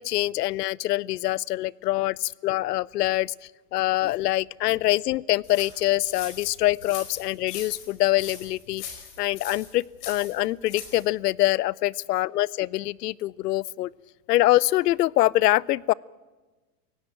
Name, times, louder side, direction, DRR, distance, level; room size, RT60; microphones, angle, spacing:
voice 1, 0.0-3.3 3.7-8.8 9.2-13.9 14.3-15.9, left 16 dB, 80° left, 24 dB, 0.7 m, -24 dB
sound 1, 5.4-11.1, left 8 dB, 45° left, 4.8 m, -41 dB
25.5 x 17.0 x 9.1 m, 1.3 s
supercardioid pair, 175°, 47 cm